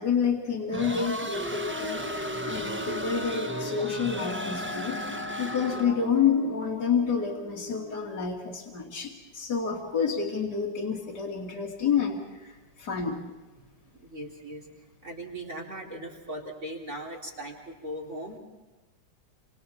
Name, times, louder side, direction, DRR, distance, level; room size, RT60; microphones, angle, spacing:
voice 1, 0.0-2.0 2.4-5.0 5.4-13.2, left 6 dB, 60° left, -3 dB, 3.4 m, -28 dB
sound 1, 0.7-6.1, equal, 10° right, 0.7 m, -35 dB
Brass instrument, 1.6-8.4, left 3 dB, 80° left, 2.2 m, -40 dB
voice 2, 14.0-14.6 15.0-18.4, right 1 dB, 40° right, -2 dB, 3.9 m, -39 dB
28.5 x 27.5 x 4.4 m, 1.2 s
omnidirectional pair, 2.0 m